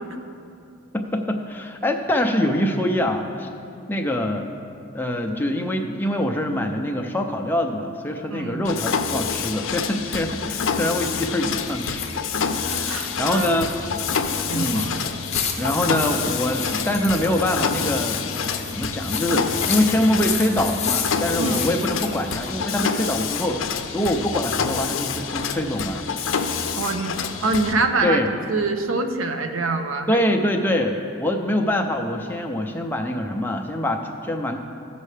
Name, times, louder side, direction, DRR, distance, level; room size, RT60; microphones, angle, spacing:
voice 1, 0.9-3.5 3.9-4.5 4.9-12.0 12.6-13.9 14.5-14.9 15.6-26.0 28.0-28.3 30.1-34.6, left 1 dB, 10° left, 3 dB, 0.5 m, -24 dB
voice 2, 8.3-8.7 12.7-13.6 14.5-14.9 21.4-21.7 26.8-28.2 28.5-30.2, right 3 dB, 80° right, 6 dB, 0.7 m, -25 dB
Mechanisms, 8.6-27.7, left 6 dB, 80° left, 0.5 m, -27 dB
sound 1, 10.2-22.6, left 7 dB, 35° left, 0.7 m, -33 dB
15.0 x 5.4 x 3.3 m, 2.6 s
head